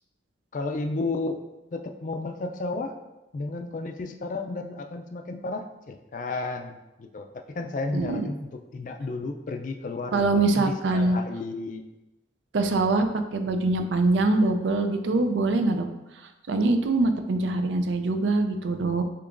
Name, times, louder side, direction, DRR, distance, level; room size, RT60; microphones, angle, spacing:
voice 1, 0.5-1.4 1.7-3.0 3.3-11.8, left 3 dB, 45° left, 5 dB, 0.3 m, -33 dB
voice 2, 7.9-8.3 10.1-11.2 12.5-15.9 16.5-19.0, right 2 dB, 80° right, 7 dB, 0.4 m, -23 dB
6.8 x 2.9 x 2.5 m, 0.99 s
head